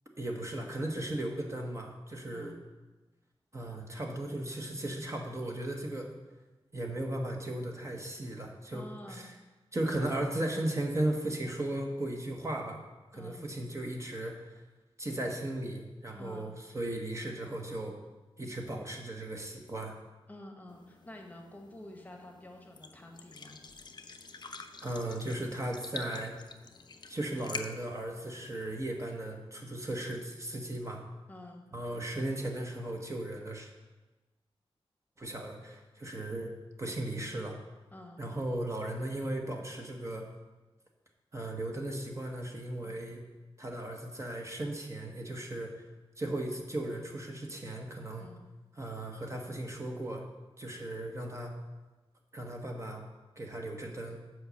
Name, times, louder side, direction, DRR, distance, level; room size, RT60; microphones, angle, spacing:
voice 1, 0.2-2.6 3.5-6.1 6.7-9.2 9.7-12.8 13.1-14.6 15.0-18.0 18.4-19.9 24.8-26.3 27.1-31.0 31.7-33.7 35.2-36.5 36.8-37.6 38.2-40.2 41.3-43.2 43.6-45.7 46.2-48.3 48.8-50.2 50.6-51.5 52.3-53.0 53.4-54.2, right 1 dB, 30° right, 1 dB, 1.1 m, -36 dB
voice 2, 8.7-9.3 13.1-13.5 16.1-16.5 20.3-23.6 31.3-31.6 37.9-38.2 42.8-43.0 48.2-48.4, left 1 dB, 15° left, 2 dB, 1.1 m, -49 dB
sound 1, 20.7-29.2, left 4 dB, 45° left, 0.6 m, -47 dB
7.8 x 5.1 x 6.8 m, 1.2 s
wide cardioid pair, 125°, 10 cm